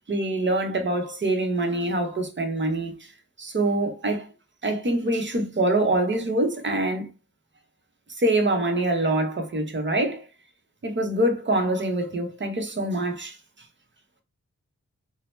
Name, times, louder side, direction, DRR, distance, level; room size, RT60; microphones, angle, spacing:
voice 1, 0.1-3.1 3.4-4.3 4.6-7.1 8.2-10.3 10.8-13.4, right 1 dB, 40° right, 0.8 m, -25 dB
2.8 x 2.0 x 3.1 m
wide cardioid pair, 70°, 30 cm